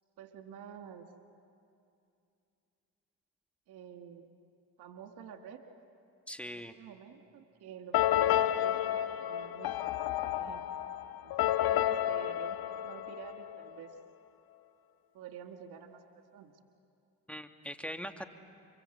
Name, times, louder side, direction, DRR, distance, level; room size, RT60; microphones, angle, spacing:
voice 1, 0.2-1.1 3.7-4.4 4.8-5.6 6.4-10.6 11.2-14.0 15.1-16.5, right 8 dB, 80° right, 5 dB, 2.0 m, -50 dB
voice 2, 6.3-6.8 17.3-18.3, equal, 5° left, 5 dB, 2.1 m, -41 dB
sound 1, 7.9-13.7, left 12 dB, 70° left, 0.9 m, -31 dB
30.0 x 24.5 x 8.0 m, 2.5 s
supercardioid pair, 50°, 38 cm